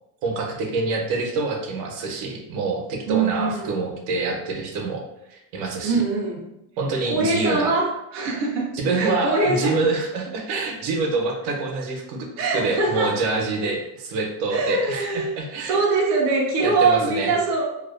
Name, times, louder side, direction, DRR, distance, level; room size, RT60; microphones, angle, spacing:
voice 1, 0.2-6.0 6.8-7.7 8.7-15.8 16.6-17.3, right 3 dB, 85° right, 1 dB, 0.7 m, -26 dB
voice 2, 3.1-3.7 5.8-6.4 7.1-9.8 12.4-13.2 13.6-13.7 14.5-15.4 15.6-17.7, right 3 dB, 40° right, -2 dB, 0.4 m, -23 dB
2.4 x 2.2 x 2.3 m, 0.85 s
cardioid pair, 175°, 47 cm